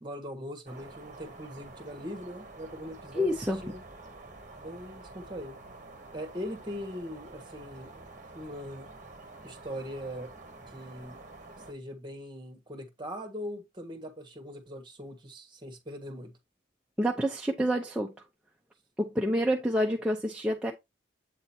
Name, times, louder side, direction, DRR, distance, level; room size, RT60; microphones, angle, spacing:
voice 1, 0.0-3.4 3.6-3.8 4.6-5.6 6.1-8.0 8.3-8.9 9.4-10.3 10.7-11.2 11.7-16.3, equal, 25° right, 1.3 m, -41 dB
sound 1, 0.7-11.7, right 2 dB, 40° right, 1.1 m, -48 dB
voice 2, 3.1-3.6 17.0-18.1 19.0-20.7, equal, 5° right, 0.6 m, -28 dB
7.9 x 2.9 x 4.2 m
head